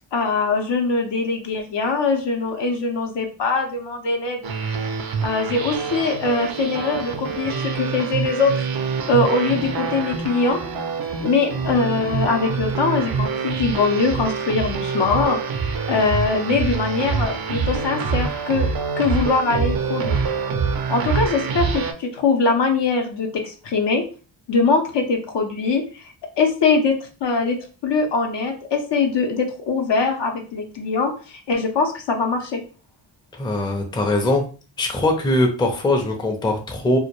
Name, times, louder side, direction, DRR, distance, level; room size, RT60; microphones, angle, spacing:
voice 1, 0.1-4.4 5.2-8.6 9.1-10.6 11.2-15.4 15.9-18.7 19.0-20.2 20.9-24.0 24.5-26.0 26.4-27.6 27.8-32.6, left 4 dB, 65° left, 3 dB, 0.7 m, -22 dB
sound 1, 4.4-21.9, right 5 dB, 55° right, 0.5 m, -26 dB
voice 2, 33.3-34.4 34.8-37.0, left 1 dB, 10° left, 3 dB, 0.5 m, -21 dB
2.2 x 2.1 x 2.8 m, 0.37 s
cardioid pair, 65°, 47 cm